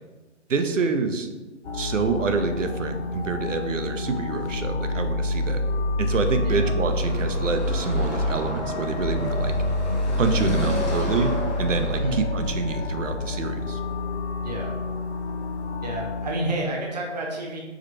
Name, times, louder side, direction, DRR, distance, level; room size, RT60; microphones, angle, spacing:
voice 1, 0.5-1.3 1.7-5.6 6.0-9.6 10.2-13.8, right 4 dB, 85° right, 7 dB, 0.6 m, -27 dB
sound 1, 1.6-16.3, left 2 dB, 65° left, 0.5 m, -28 dB
Car passing by / Traffic noise roadway noise, 6.9-12.0, equal, 35° left, 1.0 m, -31 dB
voice 2, 14.4-14.7 15.8-17.6, right 1 dB, 35° right, 0 dB, 0.8 m, -30 dB
4.8 x 3.2 x 3.0 m, 1.2 s
figure-of-eight pair, 150°, 37 cm